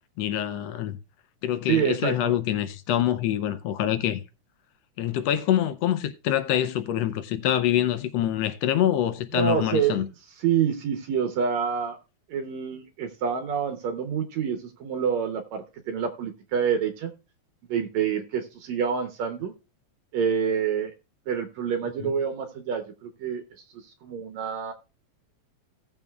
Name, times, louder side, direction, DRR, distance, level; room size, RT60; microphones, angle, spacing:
voice 1, 0.2-1.0 1.4-4.2 5.0-10.1 22.0-22.1, left 11 dB, 75° left, 1.7 m, -25 dB
voice 2, 1.7-2.4 9.3-10.0 10.4-12.0 12.3-17.1 17.7-19.5 20.1-20.9 21.3-23.4 23.7-24.7, right 7 dB, 75° right, 2.1 m, -27 dB
17.5 x 7.2 x 2.3 m
omnidirectional pair, 3.3 m